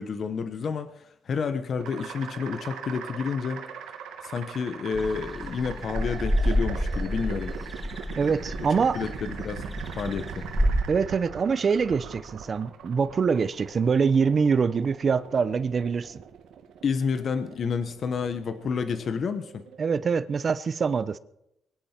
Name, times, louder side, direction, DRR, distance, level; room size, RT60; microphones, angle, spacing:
voice 1, 0.0-3.7 4.2-7.5 8.9-9.6 10.0-10.5 16.8-19.6, left 5 dB, 55° left, 10 dB, 1.1 m, -30 dB
sound 1, 1.8-20.5, right 7 dB, 85° right, 2.2 m, -41 dB
sound 2, 4.9-10.8, equal, ahead, 1.4 m, -29 dB
voice 2, 8.2-9.0 10.9-16.2 19.8-21.2, right 5 dB, 45° right, 14 dB, 0.8 m, -24 dB
23.5 x 10.5 x 4.5 m, 0.82 s
cardioid pair, 90°, 0 cm